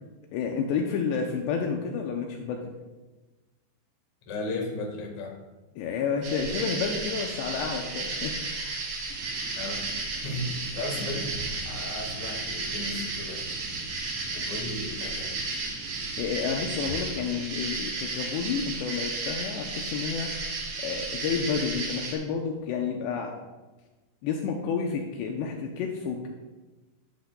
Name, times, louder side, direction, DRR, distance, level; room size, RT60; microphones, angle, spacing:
voice 1, 0.3-2.7 5.8-8.7 16.2-20.3 20.8-23.3 24.2-26.3, left 6 dB, 80° left, 1 dB, 2.7 m, -30 dB
voice 2, 4.3-5.3 9.5-9.8 10.2-13.8 14.3-15.4, left 2 dB, 55° left, 0 dB, 2.3 m, -35 dB
sound 1, 6.2-22.1, right 3 dB, 55° right, 2.7 m, -33 dB
sound 2, 9.1-16.7, right 3 dB, 85° right, 2.0 m, -46 dB
10.5 x 10.5 x 2.3 m, 1.2 s
omnidirectional pair, 5.1 m